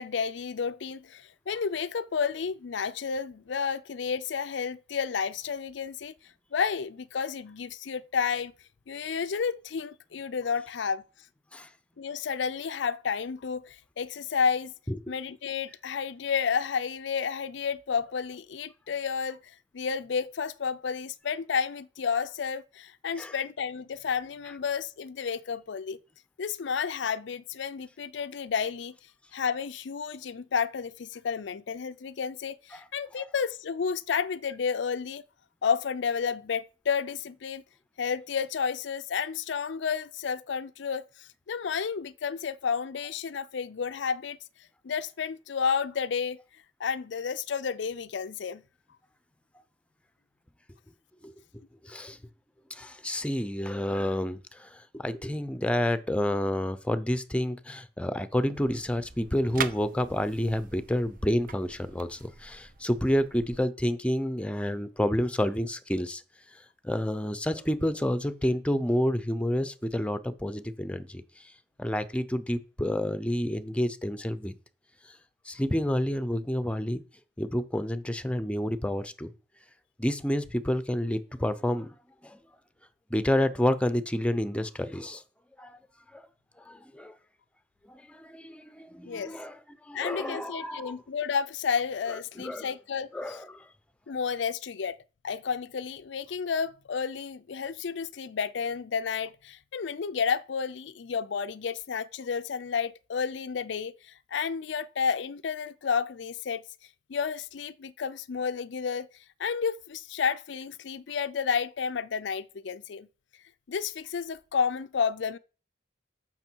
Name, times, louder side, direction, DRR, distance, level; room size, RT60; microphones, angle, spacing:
voice 1, 0.0-6.1 6.5-8.5 8.9-11.0 12.0-14.7 15.1-26.0 26.4-28.9 29.3-35.2 35.6-37.6 38.0-44.4 44.8-46.4 46.8-48.6 89.1-89.3 89.9-93.4 94.1-95.0 95.2-106.6 107.1-109.1 109.4-113.1 113.7-115.4, left 6 dB, 65° left, 0.5 m, -31 dB
voice 2, 51.8-52.2 52.7-66.2 66.8-71.2 71.8-74.5 75.5-77.0 77.4-79.3 80.0-81.9 82.2-82.4 83.1-85.2 85.6-85.8 86.1-86.3 86.7-87.1 87.9-89.6 89.9-91.0 92.4-92.7 93.1-93.6, left 1 dB, 5° left, 0.6 m, -29 dB
sound 1, 58.5-63.6, right 7 dB, 50° right, 0.7 m, -41 dB
14.0 x 6.1 x 4.5 m
head